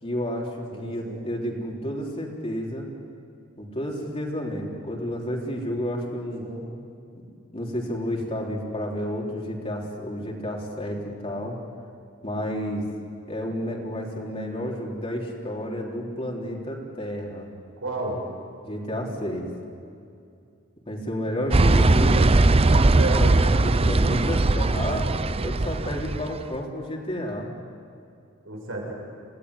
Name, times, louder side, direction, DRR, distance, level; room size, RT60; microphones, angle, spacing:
voice 1, 0.0-2.9 3.6-6.5 7.5-11.6 12.2-12.8 13.3-17.5 18.6-19.5 20.9-22.2 22.9-25.1 25.4-27.5, equal, 30° left, -1 dB, 3.7 m, -31 dB
voice 2, 0.7-1.2 6.4-6.7 17.8-18.2 23.0-23.6 28.4-28.9, right 1 dB, 85° right, -1 dB, 7.5 m, -32 dB
sound 1, 21.5-26.3, right 2 dB, 30° right, 0.6 m, -19 dB
28.0 x 17.5 x 9.9 m, 2.5 s
head